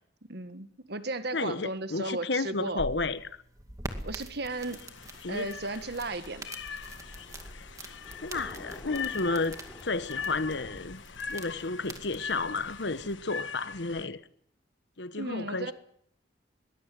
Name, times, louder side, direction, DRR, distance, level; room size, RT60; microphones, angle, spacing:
voice 1, 0.3-2.8 4.0-4.8 5.3-6.5 15.1-15.7, right 2 dB, 60° right, 1.6 m, -35 dB
voice 2, 1.3-3.2 5.2-5.5 8.2-11.0 11.3-14.2 15.0-15.7, left 3 dB, 65° left, 1.2 m, -32 dB
sound 1, 2.5-13.2, right 1 dB, 20° right, 2.2 m, -45 dB
sound 2, 4.5-14.1, left 6 dB, 85° left, 1.3 m, -41 dB
Thunder, 6.5-10.8, equal, 10° left, 3.2 m, -50 dB
22.0 x 20.0 x 7.7 m
head